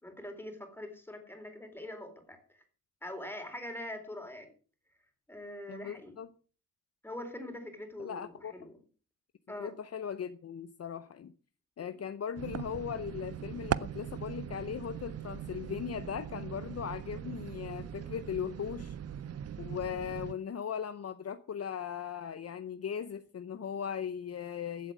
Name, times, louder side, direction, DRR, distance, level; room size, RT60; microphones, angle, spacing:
voice 1, 0.0-2.6 3.0-4.5 5.3-6.1 7.0-8.8 9.5-9.7 11.8-12.0, left 1 dB, 5° left, 3.9 m, -43 dB
voice 2, 5.7-6.3 8.0-8.5 9.6-11.3 11.8-19.0 19.6-24.9, left 8 dB, 55° left, 0.8 m, -38 dB
sound 1, 12.4-20.3, right 9 dB, 55° right, 0.6 m, -40 dB
15.5 x 8.0 x 6.2 m
wide cardioid pair, 125°, 30 cm